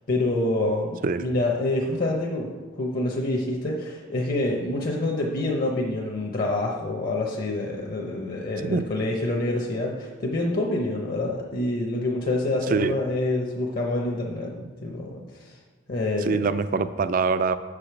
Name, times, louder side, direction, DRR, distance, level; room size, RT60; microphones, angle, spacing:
voice 1, 0.1-2.5 2.8-15.6 15.9-16.4, left 2 dB, 45° left, -1 dB, 0.8 m, -27 dB
voice 2, 12.7-13.0 16.2-17.5, right 4 dB, 40° right, 13 dB, 0.3 m, -24 dB
7.1 x 5.0 x 5.8 m, 1.5 s
head